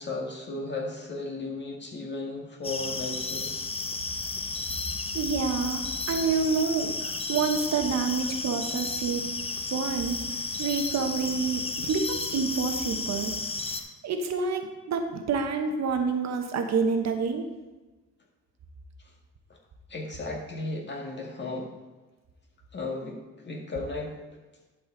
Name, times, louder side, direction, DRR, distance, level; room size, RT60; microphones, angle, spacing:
voice 1, 0.0-3.5 19.5-19.6 19.9-21.8 22.7-24.2, left 2 dB, 35° left, 0 dB, 1.9 m, -35 dB
sound 1, 2.6-13.8, left 3 dB, 20° left, 0.7 m, -33 dB
voice 2, 5.1-9.3 9.7-10.2 10.6-13.3 14.0-17.5, right 5 dB, 60° right, 5 dB, 1.0 m, -28 dB
11.5 x 4.8 x 3.9 m, 1.2 s
cardioid pair, 90°, 30 cm